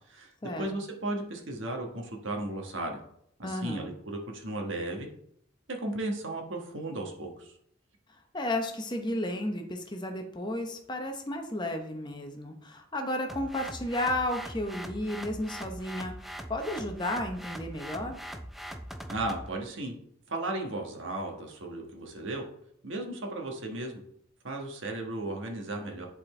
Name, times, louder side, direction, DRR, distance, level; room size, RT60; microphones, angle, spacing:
voice 1, 0.6-3.0 3.4-5.1 5.7-7.5 19.1-20.0 20.3-22.4 22.8-24.0 24.4-26.1, right 2 dB, 70° right, 2 dB, 1.3 m, -35 dB
voice 2, 3.4-3.9 8.3-16.1 16.5-18.2, left 1 dB, 20° left, 4 dB, 0.8 m, -33 dB
sound 1, 13.3-19.5, equal, ahead, 0.3 m, -41 dB
10.0 x 4.2 x 3.3 m, 0.70 s
head